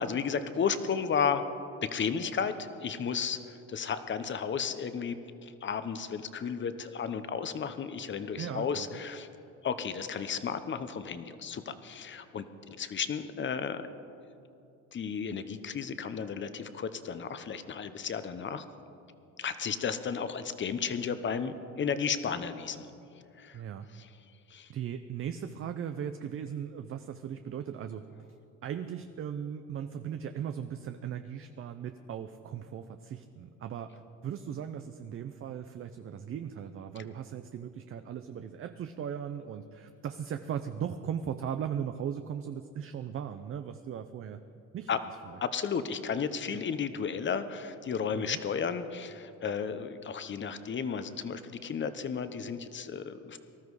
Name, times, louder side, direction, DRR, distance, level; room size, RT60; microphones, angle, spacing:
voice 1, 0.0-1.4 1.8-9.3 9.6-13.8 14.9-18.7 19.4-22.9 23.4-23.6 23.9-24.1 24.5-24.7 44.9-45.0 45.4-53.4, left 6 dB, 35° left, 11 dB, 0.9 m, -33 dB
voice 2, 8.4-9.0 23.5-23.9 24.7-28.1 28.6-44.4 44.7-44.9 45.3-45.4 48.1-48.4, right 8 dB, 40° right, 9 dB, 0.6 m, -38 dB
19.0 x 13.0 x 4.8 m, 2.7 s
cardioid pair, 105°, 33 cm